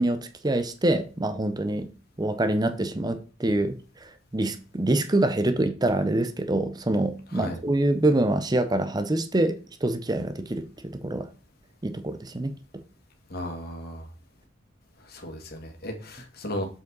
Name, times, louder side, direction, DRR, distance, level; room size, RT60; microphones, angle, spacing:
voice 1, 0.0-1.9 2.2-9.6 9.8-11.3 11.8-12.5, right 1 dB, 20° right, 0.6 m, -25 dB
voice 2, 13.3-14.1 15.0-16.7, left 1 dB, 55° left, 1.8 m, -35 dB
7.0 x 5.7 x 3.9 m
head